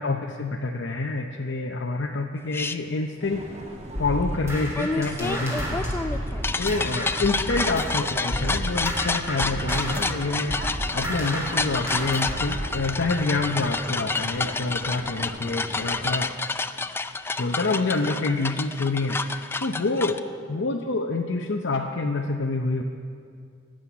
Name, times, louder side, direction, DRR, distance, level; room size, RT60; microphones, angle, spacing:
voice 1, 0.0-3.4 4.0-5.9 6.6-16.3 17.4-20.2 20.5-22.8, left 3 dB, 65° left, 2 dB, 0.7 m, -27 dB
sound 1, 2.5-2.8 4.7-20.2, left 3 dB, 10° left, 0.4 m, -29 dB
sound 2, 3.2-16.1, right 1 dB, 35° right, 1.3 m, -40 dB
sound 3, 3.9-7.9 8.3-12.7, equal, 15° right, 3.2 m, -31 dB
12.5 x 7.7 x 9.7 m, 2.3 s
head